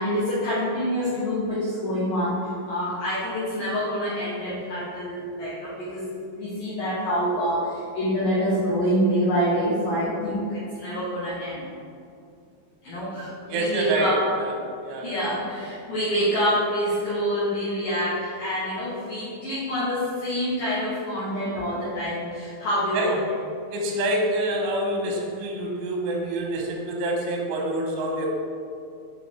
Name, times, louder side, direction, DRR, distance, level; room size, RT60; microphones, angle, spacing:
voice 1, 0.0-6.1 6.4-11.6 12.8-14.2 15.0-23.2, equal, 80° left, -10 dB, 1.9 m, -26 dB
voice 2, 13.5-14.5 14.8-15.1 22.9-23.1 23.7-28.3, right 1 dB, 90° right, 0 dB, 3.2 m, -26 dB
7.1 x 3.2 x 4.2 m, 2.4 s
omnidirectional pair, 5.5 m